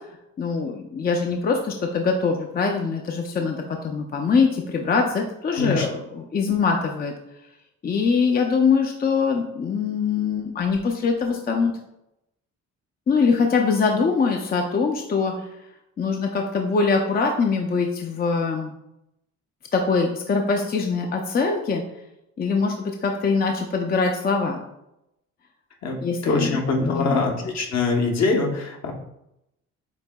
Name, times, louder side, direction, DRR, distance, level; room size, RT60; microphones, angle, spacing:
voice 1, 0.4-7.1 7.8-11.7 13.1-15.5 16.0-18.8 19.7-21.8 22.4-24.6 26.0-27.2, left 5 dB, 30° left, 2 dB, 0.5 m, -23 dB
voice 2, 5.5-5.9 25.8-28.9, left 3 dB, 60° left, 1 dB, 1.0 m, -23 dB
8.0 x 2.7 x 2.3 m, 0.84 s
cardioid pair, 90°, 30 cm